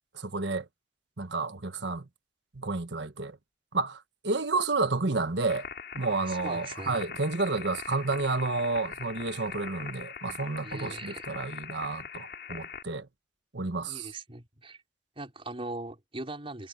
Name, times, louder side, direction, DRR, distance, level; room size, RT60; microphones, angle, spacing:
voice 1, 0.1-0.6 1.2-2.0 2.5-3.4 3.7-5.7 5.9-13.1 13.5-14.1, right 3 dB, 90° right, 1.4 m, -30 dB
sound 1, 5.5-12.8, left 6 dB, 65° left, 4.8 m, -42 dB
voice 2, 6.1-7.1 10.6-11.3 13.9-14.8 15.2-16.7, right 2 dB, 35° right, 4.7 m, -40 dB
head